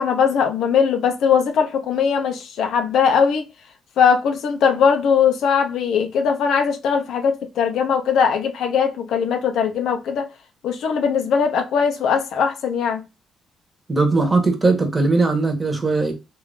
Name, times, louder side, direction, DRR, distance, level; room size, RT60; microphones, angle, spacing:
voice 1, 0.0-3.4 4.0-10.3 10.6-13.0, left 6 dB, 75° left, 0.7 m, -20 dB
voice 2, 13.9-16.1, right 3 dB, 20° right, 1.2 m, -19 dB
3.2 x 2.5 x 3.4 m
cardioid pair, 90°, 0 cm